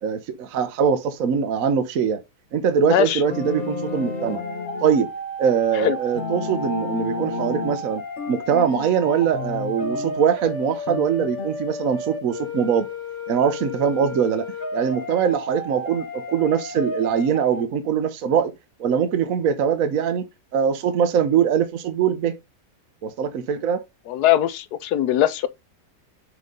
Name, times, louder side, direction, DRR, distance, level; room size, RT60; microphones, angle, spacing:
voice 1, 0.0-2.2 2.5-4.4 4.8-5.1 5.4-8.0 8.3-12.9 13.3-18.5 18.8-20.2 20.5-22.3 23.0-23.8, right 7 dB, 60° right, 1.1 m, -22 dB
voice 2, 2.9-3.2 5.7-6.0 24.1-25.5, left 12 dB, 70° left, 1.2 m, -21 dB
sound 1, 3.2-17.6, left 1 dB, 30° left, 1.3 m, -33 dB
sound 2, 3.3-5.0 6.1-7.8 8.2-10.2 10.9-11.6, left 6 dB, 50° left, 1.0 m, -32 dB
6.6 x 3.8 x 5.1 m
omnidirectional pair, 1.9 m